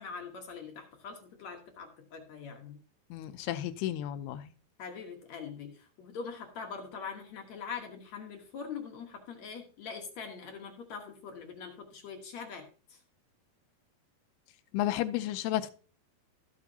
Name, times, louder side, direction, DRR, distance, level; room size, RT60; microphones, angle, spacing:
voice 1, 0.0-2.8 4.8-13.0, left 6 dB, 60° left, 3 dB, 1.9 m, -43 dB
voice 2, 3.1-4.5 14.7-15.7, left 13 dB, 80° left, 12 dB, 2.5 m, -32 dB
14.0 x 8.4 x 2.8 m, 0.40 s
omnidirectional pair, 4.6 m